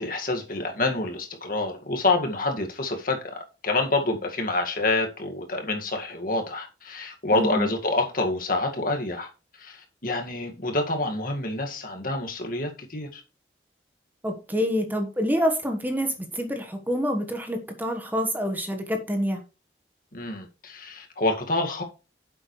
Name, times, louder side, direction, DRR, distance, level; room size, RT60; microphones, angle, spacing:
voice 1, 0.0-9.3 9.6-13.2 20.1-21.8, left 2 dB, 50° left, 2.0 m, -27 dB
voice 2, 7.3-7.7 14.2-19.4, equal, 10° right, 1.3 m, -27 dB
9.9 x 7.7 x 3.2 m
head